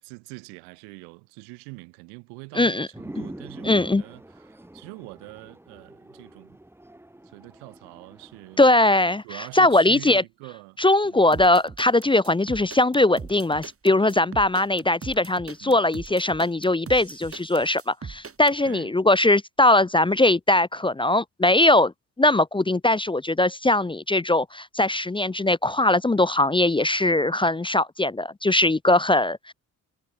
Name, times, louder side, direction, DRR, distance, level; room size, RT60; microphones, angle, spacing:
voice 1, 0.0-6.6 7.2-8.7 9.2-11.3 14.1-14.4 15.6-15.9 18.6-18.9, right 34 dB, 80° right, 2.4 m, -44 dB
voice 2, 2.5-2.9 3.6-4.0 8.6-9.2 9.5-10.2 10.8-21.9 22.2-29.5, left 2 dB, 15° left, 0.7 m, -20 dB
sound 1, 2.9-9.2, right 1 dB, 5° right, 1.5 m, -44 dB
sound 2, 11.3-18.6, right 5 dB, 35° right, 3.5 m, -40 dB
hypercardioid pair, 50°, 39 cm